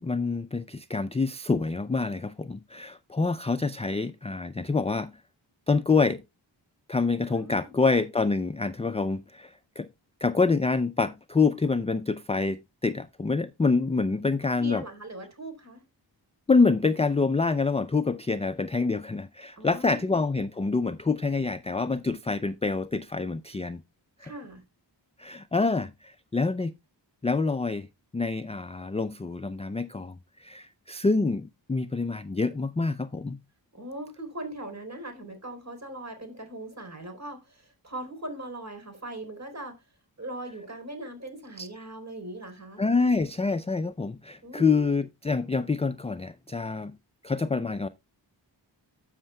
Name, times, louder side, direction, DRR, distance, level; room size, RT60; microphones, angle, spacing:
voice 1, 0.0-5.1 5.7-6.2 6.9-9.9 10.2-14.8 16.5-23.8 25.2-26.7 27.2-27.9 28.1-33.4 41.6-41.7 42.8-47.0 47.2-47.9, left 4 dB, 15° left, 0.4 m, -26 dB
voice 2, 7.3-7.8 14.4-15.8 19.6-20.2 24.2-24.6 33.7-39.8 40.2-42.8 44.4-45.0, right 1 dB, 35° right, 3.9 m, -40 dB
13.0 x 6.5 x 2.2 m
cardioid pair, 60°, 45 cm